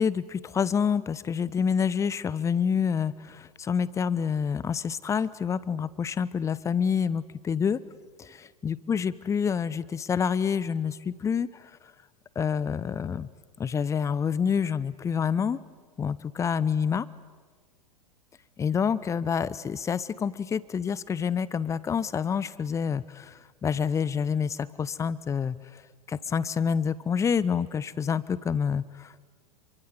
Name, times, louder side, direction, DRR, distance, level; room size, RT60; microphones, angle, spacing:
voice 1, 0.0-7.8 8.2-11.7 12.4-13.3 13.6-15.6 16.0-17.1 18.6-25.8 26.1-29.3, left 7 dB, 15° left, 19 dB, 0.8 m, -27 dB
28.0 x 24.0 x 8.1 m, 1.5 s
figure-of-eight pair, 90°, 20 cm